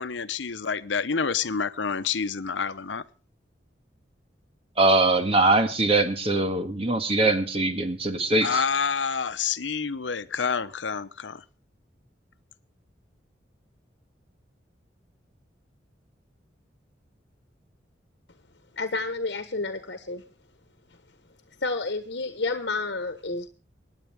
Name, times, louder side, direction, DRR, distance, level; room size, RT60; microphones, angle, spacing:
voice 1, 0.0-3.0 8.4-11.4, left 6 dB, 85° left, 0.8 m, -28 dB
voice 2, 4.8-8.6, right 2 dB, 30° right, 1.7 m, -22 dB
voice 3, 18.7-20.2 20.9-21.0 21.6-23.5, left 3 dB, 65° left, 1.3 m, -30 dB
24.0 x 9.9 x 3.5 m
head